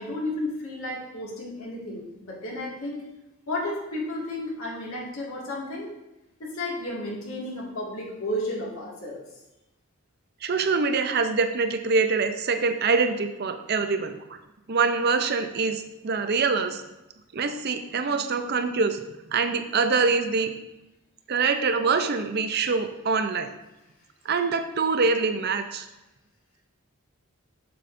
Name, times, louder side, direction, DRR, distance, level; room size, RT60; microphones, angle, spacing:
voice 1, 0.0-3.0 3.5-5.9 6.4-9.2, left 1 dB, 75° left, -4 dB, 2.1 m, -32 dB
voice 2, 10.4-14.2 14.7-16.8 17.3-19.0 19.3-20.5 21.3-23.5 24.2-25.9, right 4 dB, 50° right, 8 dB, 0.6 m, -24 dB
7.5 x 6.9 x 2.6 m, 0.97 s
head